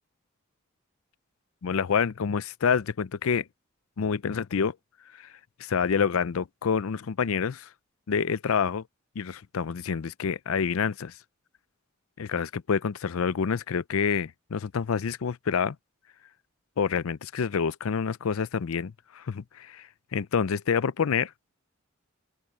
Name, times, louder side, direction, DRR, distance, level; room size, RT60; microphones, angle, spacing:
voice 1, 1.6-3.4 4.0-4.7 5.6-7.7 8.1-8.8 9.2-11.1 12.2-15.8 16.8-19.8 20.1-21.3, left 6 dB, 80° left, 0.5 m, -27 dB
open air
head